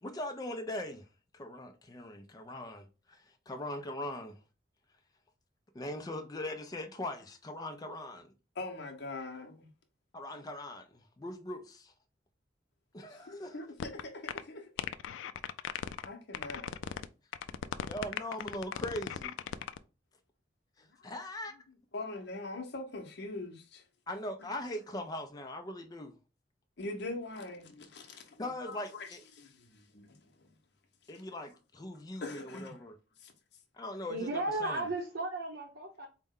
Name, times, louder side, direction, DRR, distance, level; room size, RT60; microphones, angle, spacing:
voice 1, 0.0-1.1 1.3-4.4 5.7-8.3 10.1-11.9 12.9-13.6 17.9-19.3 20.8-21.5 24.1-26.1 28.4-29.2 31.1-33.0 33.8-34.9, left 1 dB, 20° left, 0.4 m, -40 dB
voice 2, 8.6-9.7 13.1-14.7 16.0-16.7 18.2-18.3 21.9-23.8 26.8-30.5 32.2-32.8 33.2-33.3, left 2 dB, 65° left, 0.7 m, -43 dB
sound 1, 13.8-14.0 14.3-14.4 14.8-16.1 16.3-17.1 17.3-19.8, left 9 dB, 85° left, 0.3 m, -37 dB
voice 3, 34.1-36.1, right 2 dB, 65° right, 0.7 m, -35 dB
4.4 x 2.1 x 3.6 m
head